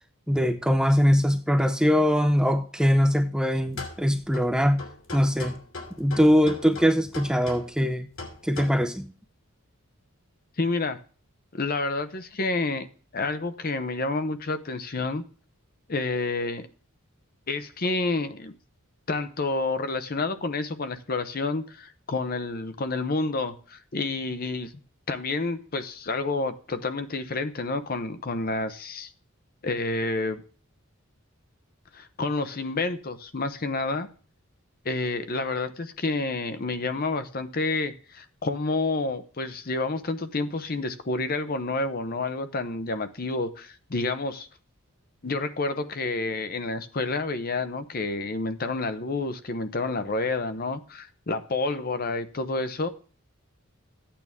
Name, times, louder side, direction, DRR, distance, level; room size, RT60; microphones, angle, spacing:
voice 1, 0.3-4.8 5.1-5.5 6.0-8.1 8.4-9.1, equal, 5° right, 0.6 m, -22 dB
sound 1, 3.7-8.7, left 3 dB, 65° left, 2.5 m, -40 dB
voice 2, 10.6-11.0 11.5-12.9 13.1-15.2 15.9-16.7 17.5-18.5 19.1-24.7 25.1-29.1 29.6-30.4 31.9-34.1 34.8-44.5 45.2-52.9, left 3 dB, 45° left, 0.8 m, -29 dB
13.5 x 8.6 x 3.6 m
head